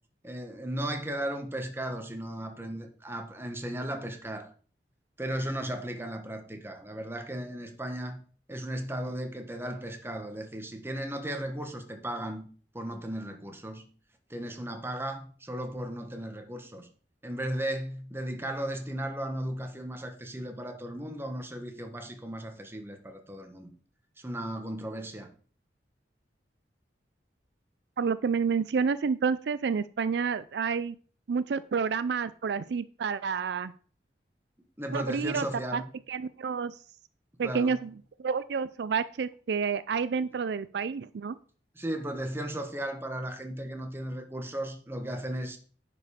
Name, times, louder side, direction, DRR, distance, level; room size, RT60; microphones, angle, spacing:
voice 1, 0.2-4.5 5.2-8.2 8.5-12.4 12.7-13.9 14.3-16.9 17.2-23.7 24.2-25.3 34.8-35.8 37.4-37.8 41.7-45.6, right 1 dB, 15° right, 1.3 m, -36 dB
voice 2, 28.0-31.0 31.3-33.7 34.9-35.5 35.7-35.8 36.1-36.8 37.4-37.9 38.2-41.4, right 5 dB, 70° right, 0.4 m, -29 dB
10.0 x 5.3 x 4.9 m
head